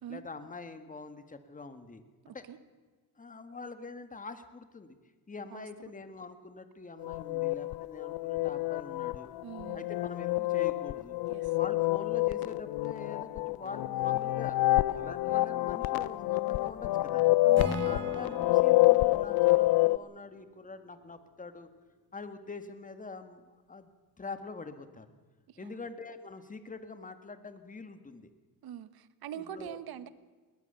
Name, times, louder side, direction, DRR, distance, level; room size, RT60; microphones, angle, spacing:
voice 1, 0.1-2.5 3.2-5.0 5.3-9.3 9.7-11.2 11.6-17.3 17.8-21.7 22.1-23.9 24.2-25.1 25.6-28.3 29.3-29.8, left 4 dB, 20° left, 9 dB, 1.7 m, -44 dB
voice 2, 2.2-2.6 5.5-5.7 9.4-9.8 11.2-11.5 17.4-17.9 25.5-25.8 28.6-30.1, right 10 dB, 70° right, 14 dB, 1.2 m, -44 dB
sound 1, 7.0-20.0, left 19 dB, 75° left, 0.6 m, -27 dB
Acoustic guitar / Strum, 17.5-20.7, right 1 dB, 40° right, 3.3 m, -42 dB
20.5 x 20.0 x 6.8 m, 1.3 s
cardioid pair, 110°, 38 cm